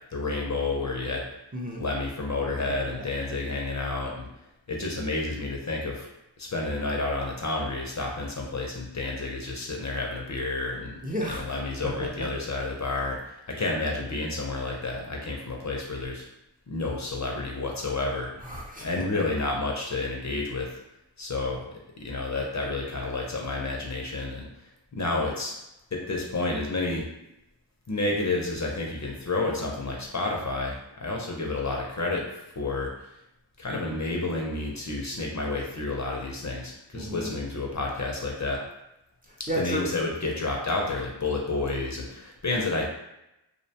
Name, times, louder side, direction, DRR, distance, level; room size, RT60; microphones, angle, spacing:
voice 1, 0.1-1.3 1.8-4.3 4.7-6.1 6.4-11.0 11.4-16.3 16.7-18.3 18.8-20.7 21.2-24.5 24.9-25.5 25.9-27.1 27.9-32.3 32.5-32.9 33.6-38.6 39.6-42.9, left 2 dB, 40° left, -1 dB, 0.5 m, -30 dB
voice 2, 1.5-1.8 2.9-3.1 11.0-11.4 18.4-19.1 36.9-37.3 39.3-39.8, equal, 20° right, -4 dB, 0.5 m, -32 dB
2.6 x 2.1 x 2.7 m, 0.89 s
wide cardioid pair, 55°, 46 cm